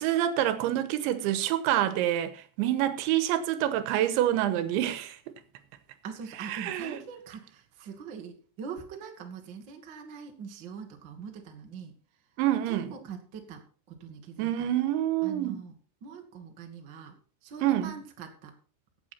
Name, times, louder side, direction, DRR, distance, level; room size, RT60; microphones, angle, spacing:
voice 1, 0.0-5.3 6.4-7.0 12.4-12.9 14.4-15.6 17.6-17.9, right 12 dB, 90° right, 3.3 m, -27 dB
voice 2, 6.0-11.9 12.6-13.6 13.9-14.5 15.2-15.7 16.0-17.1 17.4-18.5, right 6 dB, 65° right, 1.1 m, -43 dB
15.5 x 8.5 x 4.3 m
omnidirectional pair, 5.3 m